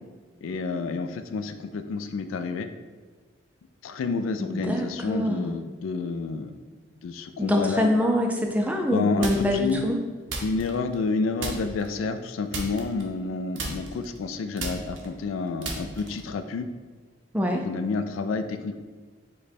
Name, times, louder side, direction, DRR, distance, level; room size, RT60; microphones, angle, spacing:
voice 1, 0.4-2.7 3.8-6.5 7.0-7.9 8.9-9.9 10.4-16.7 17.5-18.8, left 4 dB, 85° left, 9 dB, 0.3 m, -29 dB
voice 2, 4.4-5.5 7.4-10.0 17.3-17.6, equal, 5° right, 2 dB, 0.3 m, -25 dB
sound 1, 9.2-9.7 10.3-11.1 11.4-11.9 12.5-13.3 13.6-16.3, right 2 dB, 70° right, 0.7 m, -34 dB
5.0 x 2.2 x 4.2 m, 1.4 s
head